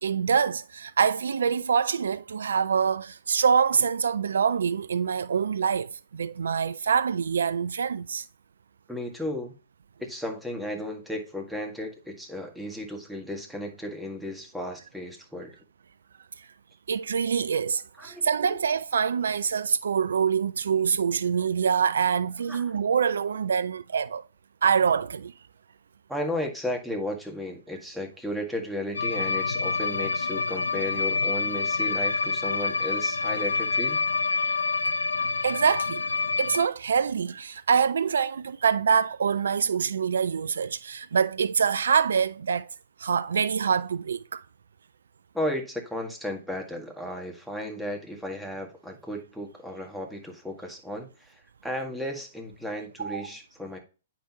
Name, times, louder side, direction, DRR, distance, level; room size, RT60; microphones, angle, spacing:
voice 1, 0.0-8.2 16.9-24.2 24.6-25.3 34.4-34.5 35.4-36.1 36.4-42.7 43.0-44.4 53.0-53.3, right 6 dB, 70° right, 0.3 m, -25 dB
voice 2, 8.9-9.5 10.0-15.5 18.0-18.6 22.5-22.6 26.1-34.0 45.3-53.8, left 1 dB, ahead, 1.8 m, -34 dB
sound 1, 28.9-36.7, left 4 dB, 80° left, 0.4 m, -27 dB
8.4 x 5.9 x 3.0 m
figure-of-eight pair, 115°, 0 cm